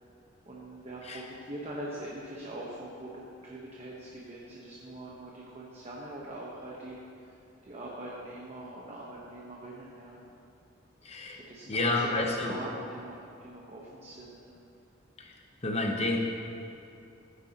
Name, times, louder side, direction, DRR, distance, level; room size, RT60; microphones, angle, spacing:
voice 1, 0.4-7.4 7.6-10.2 11.3-14.5, right 1 dB, 30° right, -4 dB, 1.1 m, -43 dB
voice 2, 11.0-11.4 11.7-12.6 15.6-16.3, left 2 dB, 30° left, 1 dB, 0.9 m, -29 dB
15.0 x 9.5 x 2.9 m, 2.7 s
head